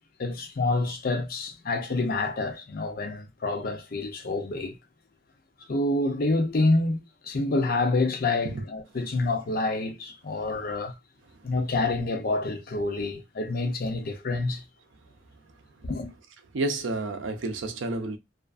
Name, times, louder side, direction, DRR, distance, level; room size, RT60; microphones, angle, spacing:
voice 1, 0.2-4.8 5.7-7.0 7.2-10.9 11.4-14.6 15.8-16.1, left 2 dB, 50° left, 0.5 m, -27 dB
voice 2, 16.5-18.2, right 2 dB, 75° right, 0.5 m, -30 dB
2.4 x 2.3 x 2.4 m
head